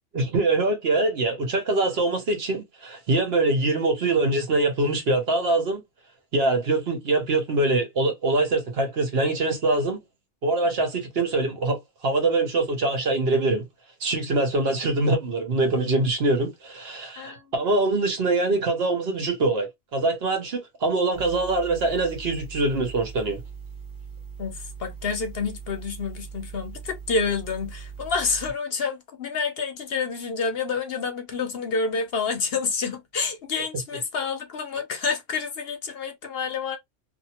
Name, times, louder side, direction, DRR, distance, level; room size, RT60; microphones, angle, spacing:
voice 1, 0.1-5.8 6.3-10.0 10.4-13.6 14.0-23.4, right 2 dB, 60° right, 1.0 m, -24 dB
voice 2, 17.2-17.5 24.4-36.8, left 5 dB, 60° left, 0.8 m, -28 dB
sound 1, 21.1-28.5, right 6 dB, 25° left, 0.5 m, -40 dB
2.7 x 2.4 x 2.8 m
omnidirectional pair, 1.3 m